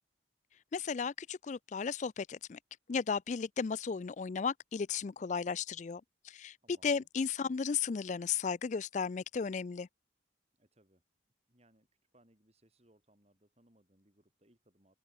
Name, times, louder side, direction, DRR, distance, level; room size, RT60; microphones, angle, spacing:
voice 1, 0.7-2.6 2.9-6.6 6.8-9.9, left 6 dB, 40° left, 0.4 m, -35 dB
voice 2, 6.6-7.1 10.5-11.0 11.5-15.0, right 1 dB, 35° right, 6.3 m, -69 dB
head